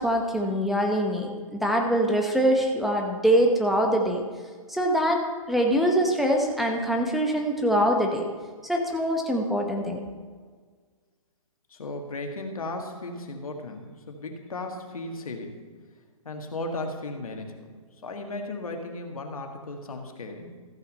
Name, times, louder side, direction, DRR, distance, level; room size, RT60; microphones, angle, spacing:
voice 1, 0.0-4.2 4.7-8.3 8.6-10.0, equal, ahead, 1 dB, 0.8 m, -24 dB
voice 2, 11.7-15.6 16.3-17.6 18.0-20.6, left 2 dB, 85° left, 3 dB, 1.8 m, -35 dB
14.0 x 5.7 x 5.5 m, 1.6 s
hypercardioid pair, 140°, 18 cm